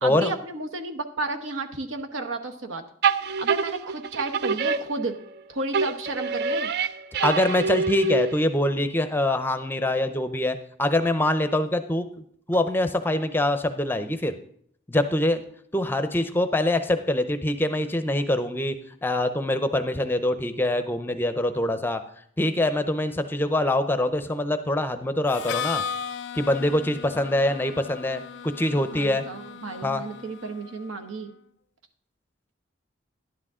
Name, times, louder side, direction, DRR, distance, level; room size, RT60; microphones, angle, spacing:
voice 1, 0.0-2.8 3.2-5.1 5.5-6.7 28.9-31.3, right 2 dB, 85° right, 6 dB, 1.0 m, -32 dB
sound 1, 3.0-5.4 5.7-8.6, right 5 dB, 55° right, 0.4 m, -26 dB
voice 2, 7.2-12.1 12.5-14.3 14.9-15.4 15.7-18.8 19.0-22.0 22.4-25.8 26.3-29.2 29.8-30.0, left 1 dB, 10° left, 10 dB, 0.5 m, -24 dB
Harmonica, 25.3-31.0, left 7 dB, 60° left, 0.3 m, -36 dB
11.5 x 10.0 x 3.6 m, 0.65 s
head